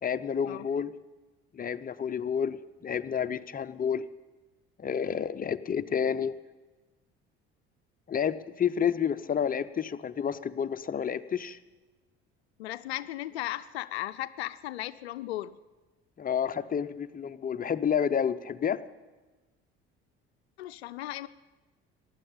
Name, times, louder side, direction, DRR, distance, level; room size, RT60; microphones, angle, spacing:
voice 1, 0.0-0.9 1.5-4.0 4.8-6.3 8.1-11.6 16.2-18.8, left 7 dB, 25° left, 11 dB, 0.8 m, -30 dB
voice 2, 12.6-15.6 20.6-21.3, left 15 dB, 85° left, 15 dB, 0.5 m, -36 dB
15.5 x 10.0 x 8.8 m, 1.2 s
hypercardioid pair, 60°, 31 cm